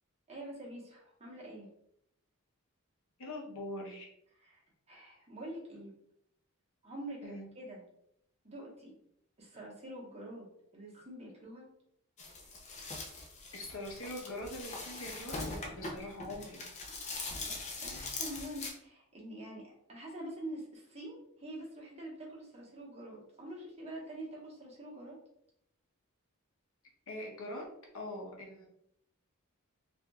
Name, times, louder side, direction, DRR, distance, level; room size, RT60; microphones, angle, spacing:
voice 1, 0.3-1.7 4.4-4.6 4.9-5.9 6.8-7.8 8.4-8.9 9.4-10.5 10.7-11.7 17.4-25.2, right 1 dB, 30° right, -5 dB, 1.2 m, -46 dB
voice 2, 3.2-4.1 7.2-7.5 13.5-16.7 27.1-27.7 27.9-28.7, left 1 dB, 65° left, -1 dB, 0.9 m, -42 dB
sound 1, 12.2-18.7, left 3 dB, 30° left, 0.6 m, -42 dB
4.7 x 2.6 x 2.3 m, 0.75 s
head